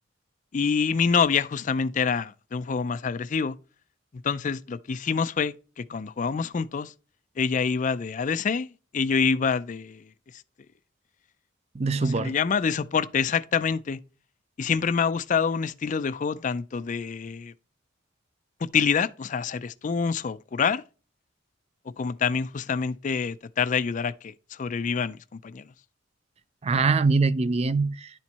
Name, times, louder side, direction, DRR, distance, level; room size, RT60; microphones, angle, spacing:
voice 1, 0.5-3.6 4.2-6.9 7.4-10.1 12.0-14.0 14.6-17.5 18.6-20.8 22.0-25.7, left 6 dB, 40° left, 0.4 m, -26 dB
voice 2, 11.7-12.4 26.6-28.1, right 4 dB, 30° right, 0.4 m, -23 dB
11.0 x 4.5 x 4.1 m
head